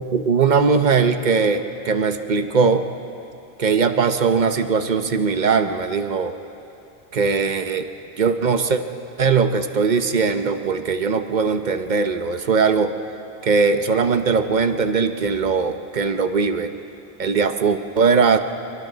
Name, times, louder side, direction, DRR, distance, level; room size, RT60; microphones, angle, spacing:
voice 1, 0.0-2.9 3.6-6.3 7.1-7.9 8.2-8.8 9.2-12.9 13.4-16.7 17.2-18.4, right 5 dB, 50° right, 8 dB, 1.0 m, -20 dB
29.0 x 22.5 x 4.1 m, 2.8 s
omnidirectional pair, 1.1 m